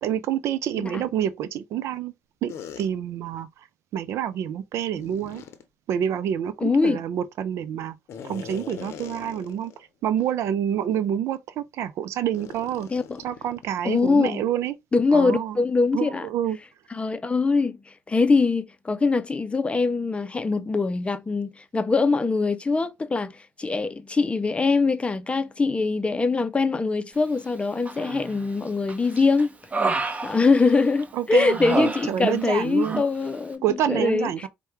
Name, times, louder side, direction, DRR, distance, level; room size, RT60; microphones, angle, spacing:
voice 1, 0.0-2.1 2.4-3.5 3.9-5.4 5.9-8.0 8.2-9.7 10.0-12.9 13.2-14.7 15.1-15.6 15.9-16.6 31.1-33.0 33.6-34.5, right 10 dB, 65° right, 0.5 m, -27 dB
sound 1, 2.5-2.9 4.9-5.6 8.1-9.8 10.2-10.3 10.9-11.1 12.3-14.1, left 7 dB, 60° left, 0.7 m, -41 dB
voice 2, 6.6-7.0 12.9-13.2 13.8-14.4 14.9-16.3 16.9-17.8 18.1-29.5 30.2-34.5, left 4 dB, 20° left, 0.5 m, -23 dB
Human voice, 27.9-28.5 28.9-31.0 31.4-32.5 32.8-33.1, right 3 dB, 25° right, 1.0 m, -29 dB
4.5 x 2.2 x 3.0 m
hypercardioid pair, 60°, 5 cm